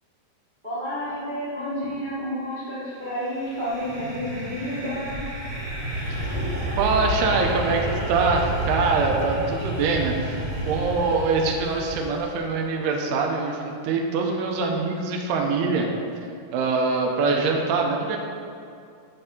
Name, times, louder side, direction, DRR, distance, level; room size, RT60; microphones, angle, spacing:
voice 1, 0.6-5.3, equal, 25° right, -10 dB, 1.0 m, -30 dB
sound 1, 3.2-12.4, right 1 dB, 40° right, 1.4 m, -30 dB
voice 2, 6.8-15.9 16.5-18.2, right 4 dB, 90° right, 1 dB, 2.8 m, -24 dB
9.7 x 5.6 x 5.3 m, 2.4 s
omnidirectional pair, 4.6 m